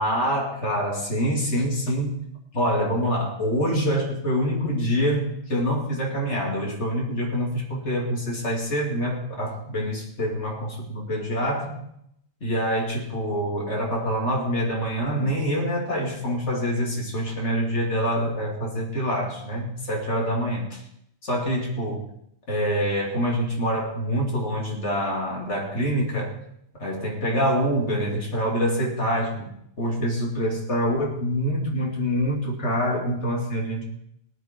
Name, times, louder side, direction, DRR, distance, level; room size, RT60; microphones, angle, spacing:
voice 1, 0.0-2.2 2.5-11.8 12.4-20.8 21.2-22.0 22.5-26.3 26.8-29.5 29.8-33.8, equal, 85° left, -2 dB, 3.3 m, -25 dB
18.0 x 11.5 x 4.6 m, 0.74 s
omnidirectional pair, 1.2 m